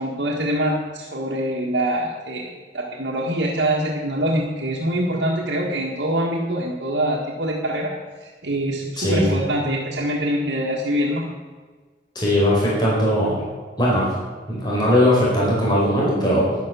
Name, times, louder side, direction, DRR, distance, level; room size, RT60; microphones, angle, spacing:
voice 1, 0.0-7.9 8.2-11.2, right 1 dB, 80° right, -3 dB, 1.6 m, -24 dB
voice 2, 12.1-13.4 13.8-14.1 14.5-16.5, equal, 25° left, -6 dB, 4.5 m, -19 dB
11.5 x 10.5 x 6.8 m, 1.4 s
head